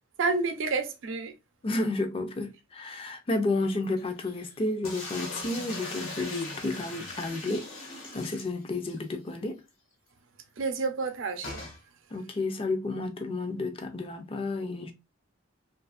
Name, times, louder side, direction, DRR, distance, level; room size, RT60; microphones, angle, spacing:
voice 1, 0.2-1.3 10.6-11.6, right 4 dB, 70° right, 0.6 m, -29 dB
voice 2, 1.6-9.6 12.1-14.9, left 2 dB, 30° left, 0.4 m, -31 dB
Human voice, 3.8-4.7 5.6-7.6 8.5-8.6, left 3 dB, 50° left, 0.8 m, -44 dB
sound 1, 4.8-9.0 9.4-9.5 9.7-9.8 11.4-11.8, left 2 dB, 75° left, 1.2 m, -39 dB
2.7 x 2.5 x 2.3 m
head